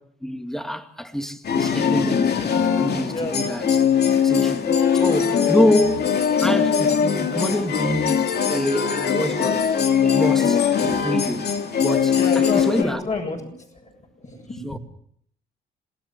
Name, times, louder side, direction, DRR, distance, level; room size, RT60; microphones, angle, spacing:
voice 1, 0.2-2.3 2.6-3.8 4.2-6.0 6.4-9.7 10.0-11.5 11.8-13.0 14.6-14.8, equal, ahead, 2.4 m, -26 dB
sound 1, 1.4-12.8, left 7 dB, 55° left, 2.4 m, -21 dB
voice 2, 12.1-14.8, left 3 dB, 35° left, 7.7 m, -30 dB
27.5 x 17.5 x 7.4 m
cardioid pair, 90°, 20 cm